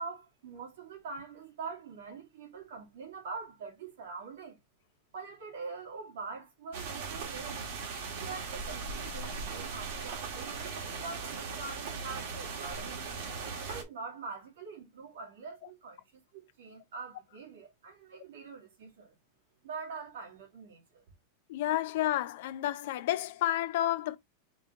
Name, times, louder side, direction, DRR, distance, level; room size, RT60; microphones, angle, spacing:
voice 1, 0.0-4.6 5.1-7.7 8.2-13.1 13.6-19.1 19.6-21.0, right 4 dB, 85° right, 2.5 m, -44 dB
sound 1, 6.7-13.8, right 4 dB, 70° right, 1.6 m, -39 dB
voice 2, 21.5-24.2, left 13 dB, 65° left, 0.5 m, -30 dB
4.9 x 2.8 x 3.5 m
supercardioid pair, 150°, 0 cm